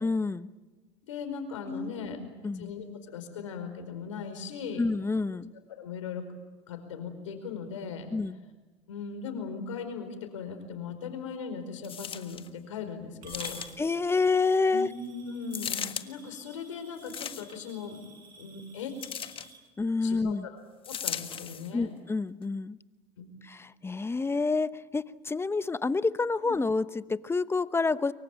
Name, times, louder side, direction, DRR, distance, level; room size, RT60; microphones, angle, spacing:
voice 1, 0.0-0.5 1.7-2.7 4.8-5.5 8.1-8.4 13.8-14.9 19.8-20.5 21.7-22.8 23.4-28.1, left 4 dB, 15° left, 15 dB, 1.0 m, -28 dB
voice 2, 1.1-2.2 2.5-4.9 5.7-6.2 6.7-8.1 8.9-10.1 10.3-13.6 14.7-18.0 18.4-18.9 20.0-20.5 20.9-21.9 23.2-23.3 26.4-26.5, left 6 dB, 90° left, 7 dB, 4.8 m, -38 dB
sound 1, 11.8-12.5 13.3-14.0 15.5-16.1 17.0-17.7 19.0-19.5 20.8-21.7 22.4-22.5, left 8 dB, 35° left, 1.6 m, -37 dB
Coin (dropping) / Glass, 13.2-19.6, right 4 dB, 60° right, 7.0 m, -51 dB
24.0 x 23.5 x 8.9 m, 1.2 s
hypercardioid pair, 85°, 16 cm